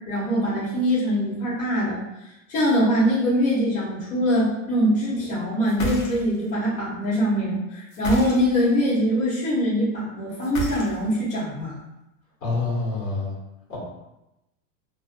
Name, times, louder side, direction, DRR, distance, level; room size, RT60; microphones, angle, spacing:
voice 1, 0.1-2.0 2.5-11.7, equal, 20° left, -9 dB, 0.8 m, -23 dB
sound 1, 5.6-6.5 7.9-8.7 10.4-11.3, equal, 50° left, 0.6 m, -31 dB
voice 2, 12.4-13.3 13.7-13.8, left 3 dB, 80° left, -4 dB, 1.2 m, -26 dB
2.4 x 2.2 x 2.5 m, 0.93 s
supercardioid pair, 145°, 40 cm